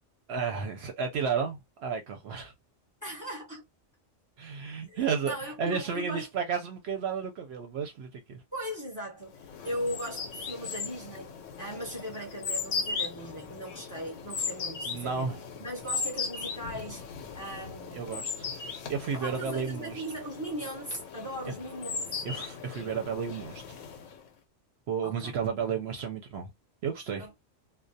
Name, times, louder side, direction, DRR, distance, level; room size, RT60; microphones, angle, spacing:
voice 1, 0.3-2.5 4.4-8.4 14.8-15.4 17.9-18.6 18.8-20.0 22.2-23.6 24.9-26.5 26.8-27.2, right 6 dB, 65° right, 0.7 m, -32 dB
voice 2, 3.0-3.7 4.9-6.3 8.5-15.3 15.6-18.1 19.1-22.1 25.0-25.3 27.2-27.4, equal, 20° left, 0.8 m, -38 dB
sound 1, 9.3-24.3, left 5 dB, 85° left, 0.9 m, -38 dB
2.3 x 2.1 x 2.5 m
omnidirectional pair, 1.3 m